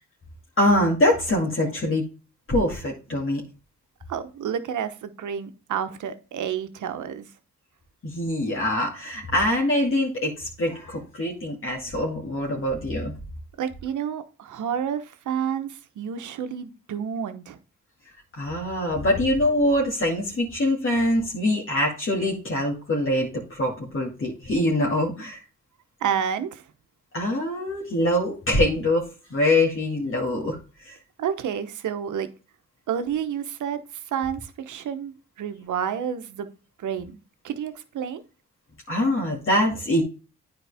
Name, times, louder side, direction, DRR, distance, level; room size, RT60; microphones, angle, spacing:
voice 1, 0.6-2.0 2.5-3.4 8.0-13.1 18.4-25.4 27.1-29.0 29.3-30.6 30.8-31.0 38.9-40.0, left 1 dB, 45° left, -3 dB, 2.3 m, -24 dB
voice 2, 4.1-7.3 13.6-17.6 26.0-26.6 31.2-32.3 32.9-36.5 36.8-37.2 37.4-38.2, right 8 dB, 85° right, 10 dB, 0.9 m, -30 dB
9.4 x 4.5 x 3.4 m, 0.34 s
cardioid pair, 60°, 29 cm